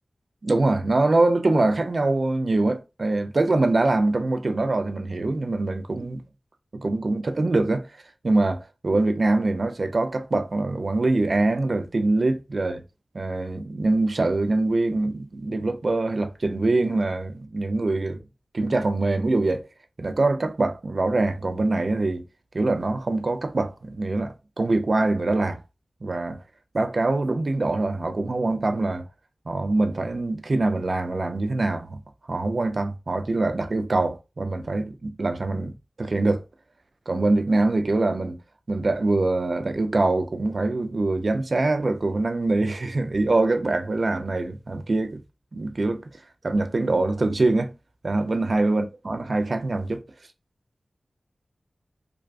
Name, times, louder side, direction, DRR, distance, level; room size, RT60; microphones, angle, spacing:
voice 1, 0.4-6.2 6.7-7.9 8.2-12.8 13.1-18.2 18.5-19.6 20.0-22.2 22.5-25.6 26.0-26.4 26.7-29.0 29.5-32.0 32.3-35.7 36.0-36.4 37.1-38.4 38.7-45.2 45.5-46.0 46.4-47.7 48.0-50.0, right 2 dB, 60° right, 0.3 m, -24 dB
2.5 x 2.3 x 2.3 m
cardioid pair, 40°, 0 cm